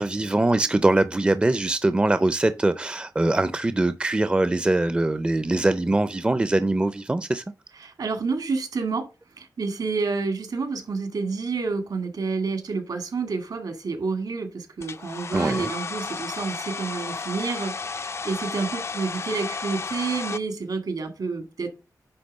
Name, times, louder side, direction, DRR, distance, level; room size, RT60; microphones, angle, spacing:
voice 1, 0.0-7.4 15.3-15.7, right 2 dB, 15° right, 0.5 m, -22 dB
voice 2, 7.8-9.1 9.4-21.7, right 4 dB, 75° right, 2.1 m, -29 dB
Domestic sounds home sounds, 14.8-20.4, left 4 dB, 40° left, 0.4 m, -33 dB
9.8 x 3.6 x 5.4 m
wide cardioid pair, 135°, 7 cm